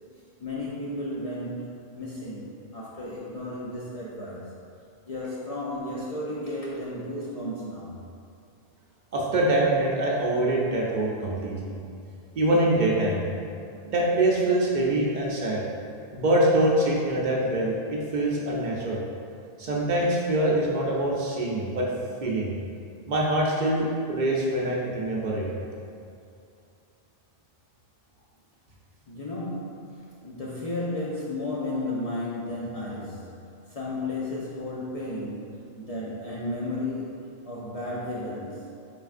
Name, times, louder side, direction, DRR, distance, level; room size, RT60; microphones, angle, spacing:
voice 1, 0.4-4.5 5.1-8.0 29.1-38.7, left 1 dB, 55° left, -6 dB, 0.4 m, -34 dB
voice 2, 9.1-11.7 12.4-13.2 13.9-15.6 16.1-19.0 19.6-21.9 22.2-22.5 23.1-25.5, right 1 dB, 55° right, -3 dB, 0.6 m, -24 dB
4.7 x 3.2 x 2.4 m, 2.5 s
omnidirectional pair, 1.0 m